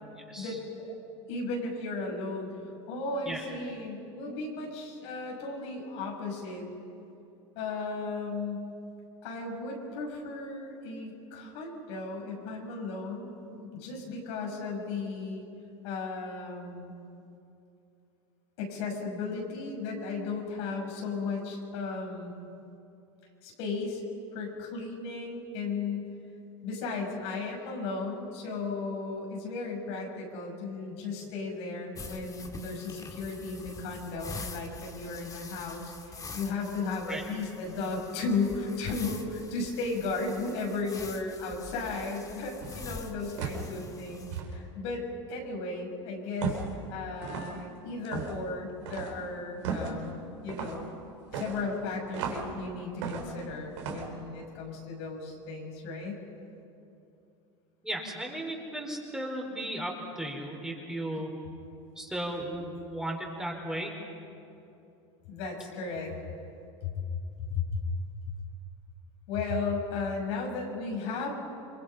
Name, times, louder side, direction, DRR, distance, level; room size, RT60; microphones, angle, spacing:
voice 1, 0.4-0.9 1.3-2.5 2.9-6.7 7.5-8.7 9.2-15.4 15.8-16.9 18.6-22.3 23.4-24.0 24.3-26.1 26.6-46.6 46.9-50.1 50.4-50.9 51.3-56.2 65.3-66.1 66.8-67.0 67.5-67.8 69.3-71.4, left 3 dB, 70° left, 0 dB, 6.3 m, -35 dB
sound 1, 31.9-44.4, left 4 dB, 25° left, 2.5 m, -45 dB
sound 2, 42.6-42.9 43.4-43.7 44.3-44.5 46.4-46.7 47.2-47.5 48.0-48.4 48.9-49.1 49.6-49.9 50.5-50.8 51.3-52.5 53.0-53.4 53.8-54.1, right 6 dB, 70° right, 4.5 m, -35 dB
voice 2, 57.8-61.3 62.0-63.9, right 1 dB, 5° right, 0 dB, 4.7 m, -35 dB
28.5 x 24.0 x 5.7 m, 2.7 s
hypercardioid pair, 90°, 15 cm